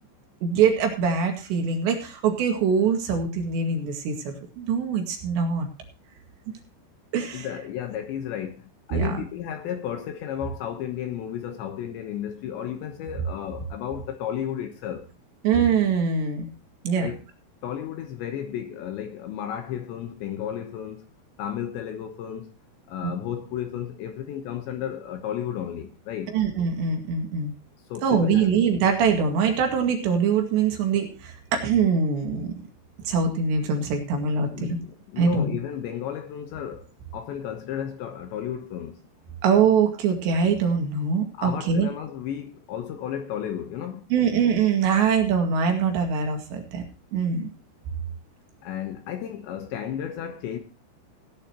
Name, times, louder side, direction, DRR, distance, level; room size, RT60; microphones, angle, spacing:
voice 1, 0.4-5.7 7.1-7.5 8.9-9.2 15.4-16.5 16.8-17.1 23.0-23.1 26.3-27.5 28.0-32.5 33.1-34.8 35.2-35.5 39.4-41.9 44.1-46.8 47.1-47.5, right 6 dB, 65° right, 4.1 m, -23 dB
voice 2, 7.3-15.1 16.9-17.2 17.6-21.1 21.4-22.5 22.9-26.3 27.9-28.5 34.5-36.9 37.1-39.0 41.3-44.1 48.6-50.6, left 10 dB, 70° left, 3.1 m, -33 dB
18.0 x 10.5 x 3.0 m
omnidirectional pair, 5.7 m